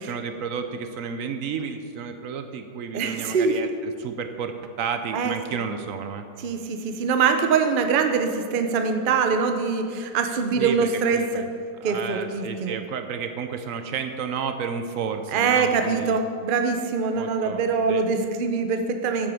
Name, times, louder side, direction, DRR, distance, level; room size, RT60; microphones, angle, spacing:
voice 1, 0.0-6.3 10.6-11.5 11.8-16.2 17.1-18.0, right 6 dB, 65° right, 7 dB, 0.8 m, -32 dB
voice 2, 2.9-3.7 5.1-5.3 6.4-11.4 11.8-12.7 15.3-19.3, right 5 dB, 90° right, 6 dB, 0.4 m, -23 dB
9.0 x 8.9 x 4.9 m, 2.3 s
omnidirectional pair, 1.9 m